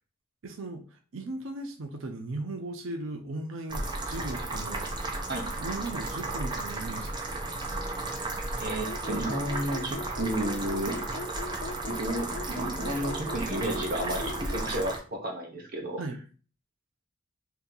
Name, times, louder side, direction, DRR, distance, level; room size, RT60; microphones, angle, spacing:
voice 1, 0.4-5.2 5.6-7.6 16.0-16.2, right 2 dB, 75° right, 0.5 m, -37 dB
sound 1, 3.7-15.0, right 2 dB, 20° right, 0.5 m, -34 dB
voice 2, 8.6-11.0 11.9-16.0, right 1 dB, 45° right, 0.8 m, -32 dB
sound 2, 8.8-14.7, left 3 dB, 70° left, 0.4 m, -39 dB
2.8 x 2.7 x 3.7 m
head